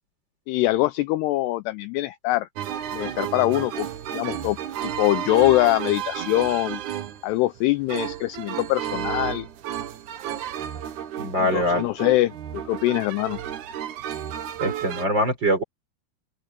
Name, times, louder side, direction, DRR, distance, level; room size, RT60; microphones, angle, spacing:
voice 1, 0.5-2.5 2.9-3.9 4.1-4.6 4.8-6.8 7.2-9.5 11.3-13.4, left 17 dB, 80° left, 2.5 m, -23 dB
sound 1, 2.6-15.1, right 10 dB, 70° right, 1.9 m, -32 dB
voice 2, 11.2-11.9 14.6-15.6, equal, 25° right, 5.1 m, -23 dB
open air
omnidirectional pair, 5.2 m